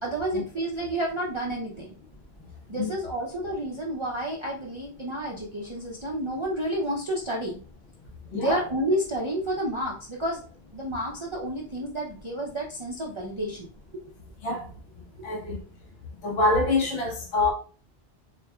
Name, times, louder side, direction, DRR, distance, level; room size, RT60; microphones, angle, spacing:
voice 1, 0.0-2.0 2.7-7.6 8.3-10.4 10.7-13.7 13.9-14.0 15.2-15.4, right 1 dB, 35° right, 0.5 m, -30 dB
voice 2, 8.3-8.6 14.4-14.7 15.2-15.6 16.2-17.5, left 2 dB, 70° left, 1.2 m, -25 dB
4.4 x 2.8 x 2.2 m
omnidirectional pair, 1.1 m